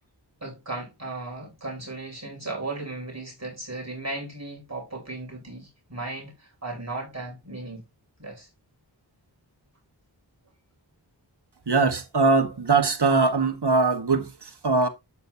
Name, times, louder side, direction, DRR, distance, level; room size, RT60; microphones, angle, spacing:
voice 1, 0.4-7.8 8.2-8.5, right 2 dB, 35° right, 5.0 m, -36 dB
voice 2, 11.7-14.9, right 3 dB, 65° right, 1.5 m, -22 dB
8.3 x 6.5 x 2.8 m
wide cardioid pair, 40°, 44 cm